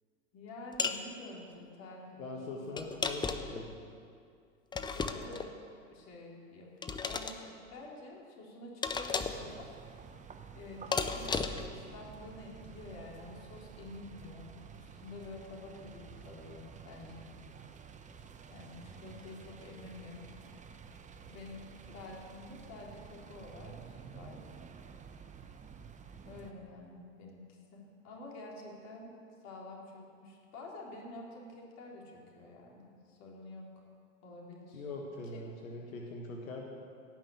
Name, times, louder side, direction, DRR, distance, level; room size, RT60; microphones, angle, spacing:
voice 1, 0.3-3.0 4.7-5.5 5.8-9.7 10.5-11.3 11.6-14.5 14.8-17.3 18.5-20.4 21.3-24.4 26.3-27.5 27.7-29.1 29.4-33.8 34.2-34.9 35.3-35.4, left 2 dB, 40° left, -2 dB, 3.6 m, -49 dB
sound 1, 0.8-1.0 2.8-3.6 4.7-5.5 6.8-7.4 8.8-9.5 10.9-11.7, left 4 dB, 10° left, 0.6 m, -34 dB
voice 2, 2.2-3.8 34.7-36.6, left 2 dB, 85° left, 0 dB, 1.7 m, -42 dB
sound 2, 9.3-26.5, right 6 dB, 20° right, 0.9 m, -51 dB
17.0 x 6.1 x 8.4 m, 2.3 s
hypercardioid pair, 105°, 40 cm